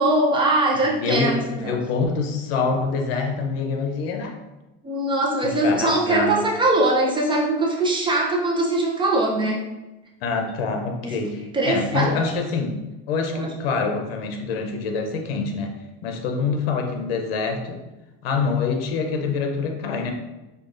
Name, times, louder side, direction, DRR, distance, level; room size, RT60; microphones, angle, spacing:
voice 1, 0.0-1.8 4.8-9.6 11.0-11.2 11.5-12.3 13.3-13.5, right 2 dB, 15° right, -2 dB, 0.5 m, -21 dB
voice 2, 0.9-4.4 5.4-6.4 10.2-12.8 13.1-15.7 16.0-17.8 18.2-20.1, left 4 dB, 85° left, 4 dB, 0.6 m, -25 dB
4.5 x 2.3 x 2.5 m, 1.0 s
supercardioid pair, 120°, 29 cm